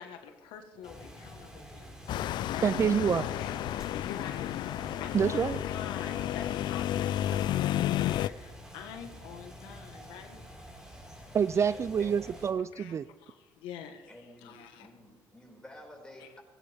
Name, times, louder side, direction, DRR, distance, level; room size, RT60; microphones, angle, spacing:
voice 1, 0.0-2.9 3.3-3.5 3.9-10.4 12.7-14.9 16.2-16.3, left 8 dB, 85° left, 6 dB, 1.4 m, -46 dB
sound 1, 0.8-12.5, equal, 5° right, 4.6 m, -48 dB
sound 2, 2.1-8.3, left 13 dB, 65° left, 0.4 m, -31 dB
voice 2, 2.6-3.3 5.1-5.6 11.3-13.1, right 7 dB, 35° right, 16 dB, 0.3 m, -27 dB
voice 3, 11.7-12.2 14.1-16.4, left 1 dB, 10° left, -1 dB, 5.4 m, -51 dB
19.0 x 16.5 x 3.5 m, 1.4 s
cardioid pair, 100°, 8 cm